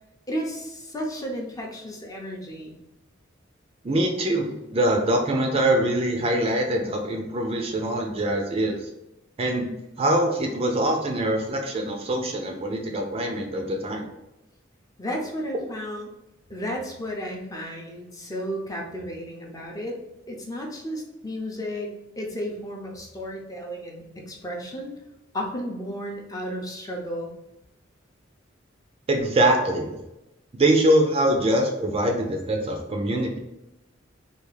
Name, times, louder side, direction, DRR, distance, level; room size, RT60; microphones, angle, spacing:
voice 1, 0.3-2.7 15.0-16.1 16.5-20.0 20.3-24.9 25.3-27.3, equal, 20° left, 0 dB, 0.6 m, -33 dB
voice 2, 3.8-8.9 9.4-14.1 29.1-30.0 30.5-33.4, right 1 dB, 30° right, 2 dB, 0.4 m, -23 dB
3.5 x 2.4 x 3.2 m, 0.93 s
head